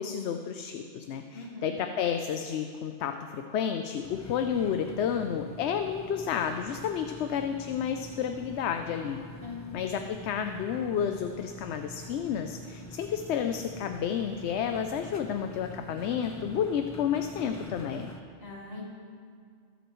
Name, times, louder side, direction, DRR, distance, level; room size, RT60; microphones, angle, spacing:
voice 1, 0.0-9.2 9.7-18.1, left 8 dB, 80° left, 6 dB, 0.8 m, -31 dB
voice 2, 1.3-1.8 9.4-9.9 18.4-18.9, left 3 dB, 60° left, -4 dB, 2.4 m, -41 dB
sound 1, 4.0-18.2, left 1 dB, 20° left, 0.5 m, -46 dB
21.5 x 8.0 x 3.1 m, 2.2 s
omnidirectional pair, 1.1 m